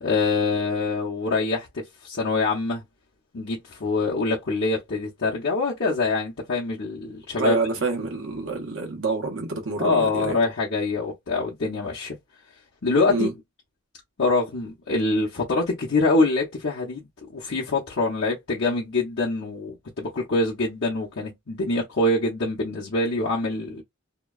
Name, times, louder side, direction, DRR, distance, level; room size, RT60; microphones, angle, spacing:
voice 1, 0.0-2.8 3.3-7.6 9.8-12.2 12.8-13.3 14.2-17.1 17.3-23.8, left 3 dB, 60° left, 0.9 m, -25 dB
voice 2, 7.4-10.4 13.1-13.3, right 3 dB, 65° right, 1.0 m, -27 dB
2.9 x 2.3 x 2.3 m
head